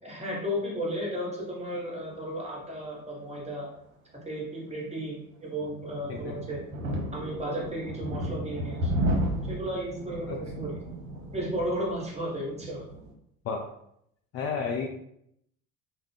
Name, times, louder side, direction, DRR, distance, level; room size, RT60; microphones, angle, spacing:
voice 1, 0.0-3.7 4.3-6.6 7.1-8.9 9.5-10.8 11.3-12.8, equal, 15° right, -4 dB, 1.1 m, -34 dB
sound 1, 5.6-13.1, equal, 65° right, 0.8 m, -33 dB
voice 2, 14.3-14.9, left 5 dB, 35° left, 0 dB, 0.4 m, -31 dB
2.4 x 2.0 x 3.2 m, 0.73 s
figure-of-eight pair, 55°, 44 cm